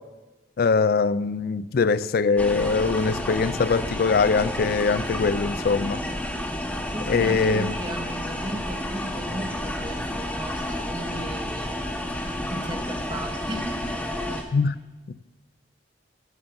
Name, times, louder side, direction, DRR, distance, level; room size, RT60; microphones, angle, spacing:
voice 1, 0.6-6.0 7.1-7.7 14.5-14.7, left 4 dB, 55° left, 0.3 m, -22 dB
sound 1, 2.4-14.4, left 1 dB, 10° left, 1.0 m, -31 dB
voice 2, 6.9-11.8 12.5-14.0 14.3-14.5, right 1 dB, 25° right, 0.9 m, -36 dB
14.5 x 5.4 x 6.7 m
head